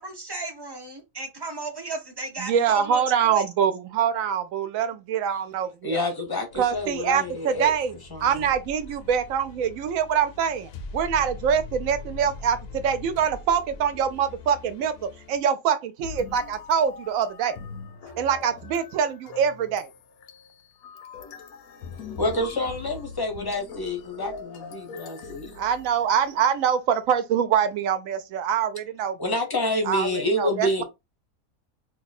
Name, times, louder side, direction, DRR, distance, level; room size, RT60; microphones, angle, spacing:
voice 1, 0.0-3.4, right 4 dB, 30° right, 0.4 m, -34 dB
voice 2, 2.4-6.0 6.6-7.9 8.2-17.6 18.2-19.9 25.6-29.4 29.9-30.8, right 8 dB, 75° right, 1.0 m, -24 dB
voice 3, 5.8-7.7 8.1-8.5 22.2-25.5 29.2-30.8, left 1 dB, 25° left, 0.6 m, -28 dB
sound 1, 6.5-15.4, left 3 dB, 60° left, 0.7 m, -42 dB
sound 2, 16.0-26.3, left 5 dB, 90° left, 1.1 m, -42 dB
3.0 x 2.2 x 4.0 m
omnidirectional pair, 1.5 m